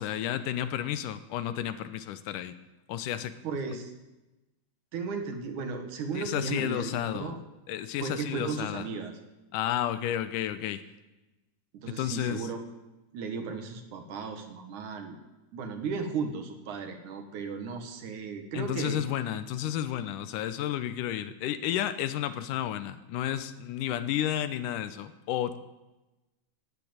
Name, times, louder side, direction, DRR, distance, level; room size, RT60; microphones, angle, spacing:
voice 1, 0.0-2.5 2.9-3.4 3.7-3.8 6.1-7.3 7.7-8.9 9.5-10.8 11.9-12.5 18.5-25.6, left 11 dB, 80° left, 12 dB, 2.3 m, -32 dB
voice 2, 3.4-3.9 4.9-7.4 8.0-9.1 11.7-12.6 13.1-15.2 15.5-19.0, right 5 dB, 70° right, 6 dB, 2.9 m, -35 dB
11.5 x 10.5 x 8.8 m, 1.0 s
omnidirectional pair, 3.7 m